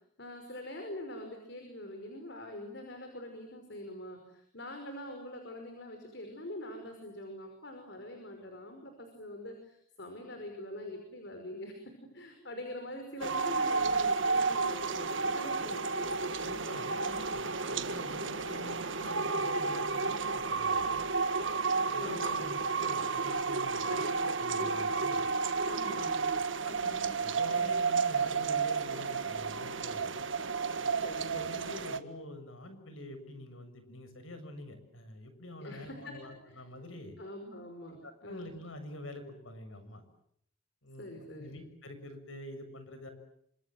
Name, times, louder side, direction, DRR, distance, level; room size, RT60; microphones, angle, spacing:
voice 1, 0.2-16.1 21.9-22.6 23.8-24.8 25.7-26.3 31.0-31.6 35.6-36.2 36.5-36.6 37.2-38.5 41.0-41.5, left 1 dB, 55° left, 5 dB, 5.5 m, -44 dB
sound 1, 13.2-32.0, right 4 dB, 60° right, 1.8 m, -32 dB
voice 2, 16.4-21.1 21.9-24.1 24.4-25.3 26.6-30.3 31.2-37.2 37.9-40.0 40.8-41.1 41.4-43.1, left 1 dB, 70° left, 9 dB, 6.9 m, -47 dB
28.5 x 26.5 x 7.8 m, 0.71 s
head